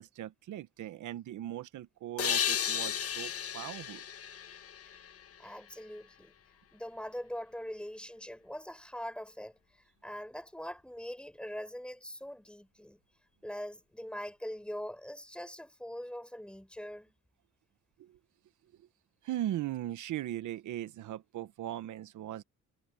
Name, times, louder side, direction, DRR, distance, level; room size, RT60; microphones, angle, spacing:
voice 1, 0.0-4.0 18.0-18.2 19.2-22.4, right 13 dB, 75° right, 1.1 m, -39 dB
sound 1, 2.2-5.7, left 9 dB, 50° left, 1.2 m, -34 dB
voice 2, 5.4-6.3 6.7-9.6 10.0-13.0 13.4-17.1, equal, 5° left, 4.7 m, -42 dB
cardioid pair, 90°, 30 cm